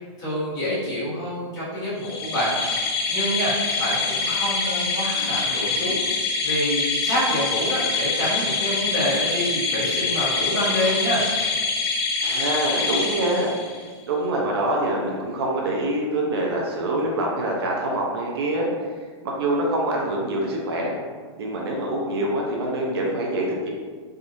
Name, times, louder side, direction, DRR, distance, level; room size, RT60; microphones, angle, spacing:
voice 1, 0.2-2.6 3.1-6.0 6.4-11.2, equal, 20° left, -11 dB, 1.3 m, -27 dB
sound 1, 2.0-13.9, left 4 dB, 55° left, 0.5 m, -25 dB
voice 2, 12.2-13.5 14.1-18.7 19.2-21.0 21.4-23.7, right 1 dB, 55° right, -1 dB, 0.6 m, -25 dB
3.5 x 2.6 x 2.5 m, 1.5 s
hypercardioid pair, 165°, 16 cm